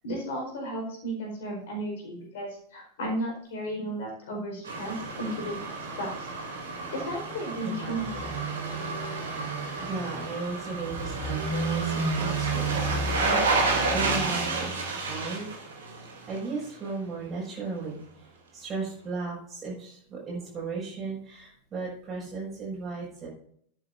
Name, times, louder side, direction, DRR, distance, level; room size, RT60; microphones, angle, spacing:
voice 1, 0.0-5.7 6.0-6.3 6.9-8.2, right 1 dB, 55° left, 1 dB, 4.6 m, -34 dB
sound 1, 4.6-16.5 16.9-17.0, right 3 dB, 65° right, 3.1 m, -30 dB
voice 2, 9.8-15.5 16.3-18.0 18.5-23.3, right 3 dB, 25° right, -7 dB, 5.7 m, -36 dB
16.0 x 9.8 x 2.7 m, 0.66 s
figure-of-eight pair, 90°, 0 cm